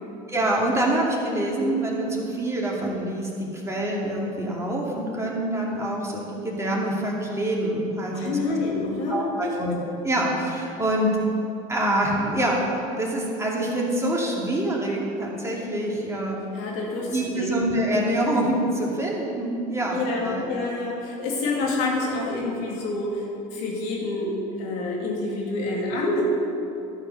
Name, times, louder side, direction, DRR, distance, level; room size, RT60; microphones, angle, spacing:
voice 1, 0.3-8.4 9.1-9.8 10.0-11.1 11.7-16.4 17.1-20.0 20.2-20.5, right 1 dB, 15° right, -3 dB, 2.4 m, -26 dB
voice 2, 8.1-9.5 16.5-17.9 19.9-26.2, left 2 dB, 75° left, -2 dB, 2.5 m, -28 dB
12.5 x 4.9 x 6.6 m, 2.7 s
supercardioid pair, 90°, 18 cm